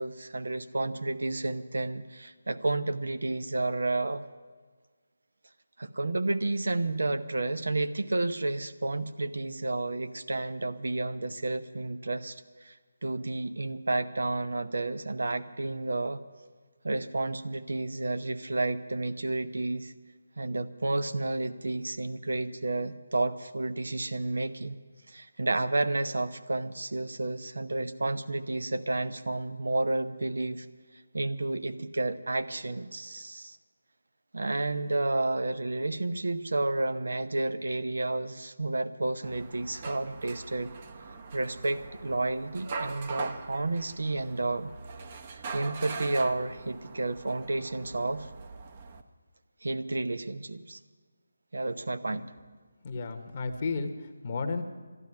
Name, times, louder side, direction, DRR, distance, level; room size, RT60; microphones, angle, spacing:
voice 1, 0.0-4.2 5.8-12.8 13.0-16.2 16.8-19.9 20.4-24.7 25.1-30.7 31.1-33.6 34.3-40.7 41.3-44.7 45.5-48.3 49.6-50.8 51.5-52.2, right 2 dB, 70° right, 10 dB, 0.8 m, -31 dB
sound 1, 39.2-49.0, right 4 dB, 35° right, 0.9 m, -42 dB
voice 2, 52.8-54.6, left 4 dB, 40° left, 6 dB, 1.2 m, -33 dB
12.5 x 11.5 x 9.7 m, 1.5 s
figure-of-eight pair, 155°, 0 cm